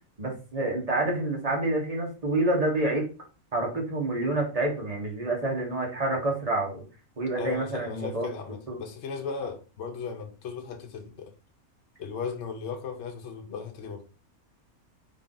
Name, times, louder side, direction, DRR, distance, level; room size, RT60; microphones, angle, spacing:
voice 1, 0.2-3.0 3.5-6.8 7.2-8.3 8.7-8.8, right 2 dB, 30° right, 1.1 m, -28 dB
voice 2, 7.4-11.3 12.0-14.0, left 5 dB, 60° left, 0.9 m, -36 dB
3.7 x 2.7 x 3.8 m
omnidirectional pair, 1.5 m